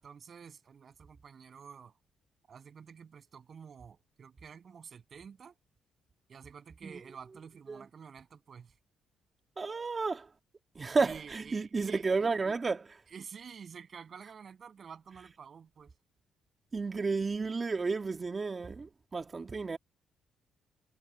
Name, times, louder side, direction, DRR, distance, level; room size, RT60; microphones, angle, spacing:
voice 1, 0.0-1.9 2.5-5.5 6.3-8.7 11.0-12.6 13.1-16.0, right 6 dB, 50° right, 7.4 m, -49 dB
voice 2, 9.6-10.3 10.8-12.8 16.7-19.8, right 4 dB, 30° right, 2.1 m, -32 dB
cardioid pair, 90°, 0 cm